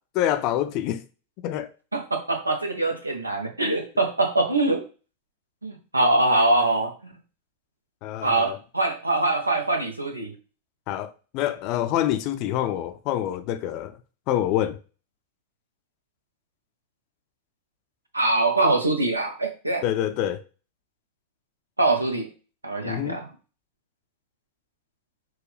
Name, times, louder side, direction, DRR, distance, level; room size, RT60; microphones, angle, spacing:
voice 1, 0.2-1.0 1.4-1.7 8.0-8.6 10.9-14.0 14.3-14.8 19.8-20.4 22.8-23.2, left 12 dB, 40° left, 0.5 m, -26 dB
voice 2, 1.9-4.8 5.6-7.1 8.2-10.3 18.1-19.8 21.8-22.3 22.6-23.3, right 2 dB, 85° right, 0.9 m, -23 dB
6.2 x 2.4 x 3.3 m
figure-of-eight pair, 90°, 0 cm